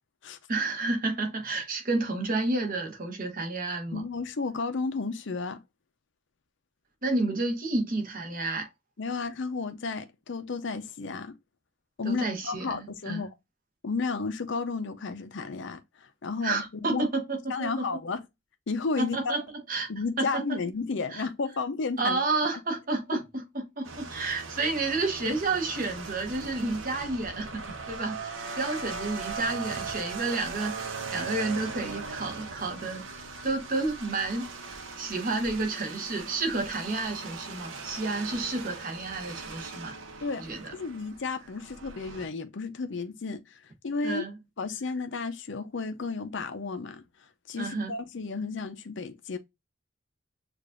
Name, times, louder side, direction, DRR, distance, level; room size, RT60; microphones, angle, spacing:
voice 1, 0.5-4.0 7.0-8.7 12.0-13.2 16.4-17.9 19.0-19.9 20.2-20.6 21.1-21.3 22.0-23.2 23.5-34.5 35.0-40.0 40.4-40.7 44.0-44.3 47.6-47.9, right 3 dB, 45° right, 1.0 m, -30 dB
voice 2, 3.9-5.6 9.0-11.3 12.0-13.3 13.8-17.1 17.5-18.3 18.7-19.4 19.9-22.2 40.2-40.4 40.7-44.2 44.6-47.0 47.5-49.4, left 4 dB, 60° left, 0.6 m, -32 dB
sound 1, 23.8-42.3, right 4 dB, 75° right, 0.9 m, -39 dB
6.7 x 2.5 x 2.4 m
head